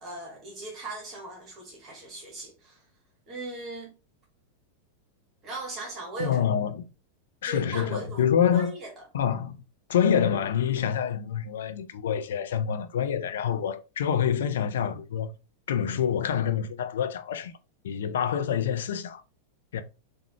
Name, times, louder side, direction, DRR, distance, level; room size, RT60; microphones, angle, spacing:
voice 1, 0.0-2.8 3.3-3.9 5.4-6.5 7.4-8.9, right 2 dB, 30° right, 1.1 m, -39 dB
voice 2, 6.2-6.8 7.4-8.7 9.1-9.6 9.9-15.3 15.7-17.5 17.8-19.2 19.7-19.8, left 8 dB, 60° left, 0.4 m, -26 dB
3.5 x 2.3 x 2.9 m
figure-of-eight pair, 90°, 0 cm